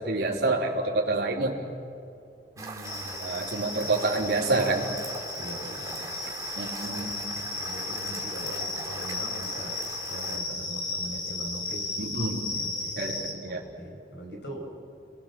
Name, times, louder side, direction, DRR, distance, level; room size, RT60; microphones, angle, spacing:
voice 1, 0.0-1.5 3.2-4.8 6.6-7.1 12.0-12.5 13.0-13.6, right 2 dB, 65° right, -1 dB, 3.6 m, -27 dB
voice 2, 2.6-3.9 5.4-6.1 6.8-9.8 10.1-12.1 12.6-12.9 13.4-14.7, right 1 dB, 80° left, 1 dB, 6.2 m, -42 dB
sound 1, 2.6-10.4, right 3 dB, 20° right, 2.6 m, -41 dB
sound 2, 2.8-13.3, left 3 dB, 45° left, 3.1 m, -35 dB
29.0 x 21.0 x 7.5 m, 2.5 s
head